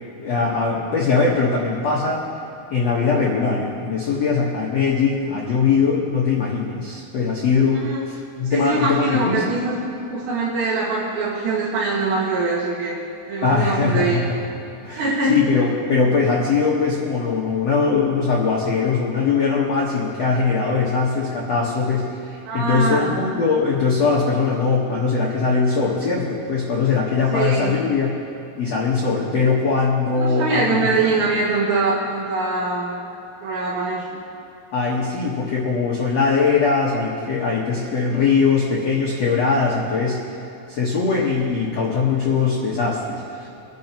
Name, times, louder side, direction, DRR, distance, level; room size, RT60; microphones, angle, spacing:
voice 1, 0.0-2.2 2.7-9.5 13.4-14.4 14.8-28.2 28.6-31.1 34.7-40.2 40.7-43.5, left 4 dB, 70° left, -4 dB, 1.5 m, -21 dB
voice 2, 8.4-9.8 10.1-12.9 13.3-14.2 14.9-15.4 22.5-23.1 27.3-27.8 30.2-33.0 33.4-34.2, right 3 dB, 80° right, -7 dB, 4.0 m, -23 dB
24.5 x 10.0 x 2.9 m, 2.9 s
omnidirectional pair, 5.0 m